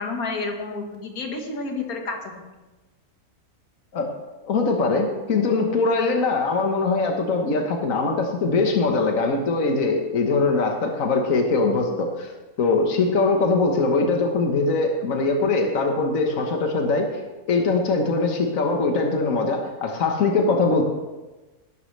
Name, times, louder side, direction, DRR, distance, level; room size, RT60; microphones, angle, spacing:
voice 1, 0.0-2.3, left 3 dB, 85° left, 2 dB, 2.0 m, -30 dB
voice 2, 4.4-12.3 12.6-17.1 17.5-20.8, left 3 dB, 70° left, 2 dB, 1.7 m, -22 dB
18.5 x 11.5 x 3.3 m, 1.1 s
omnidirectional pair, 1.5 m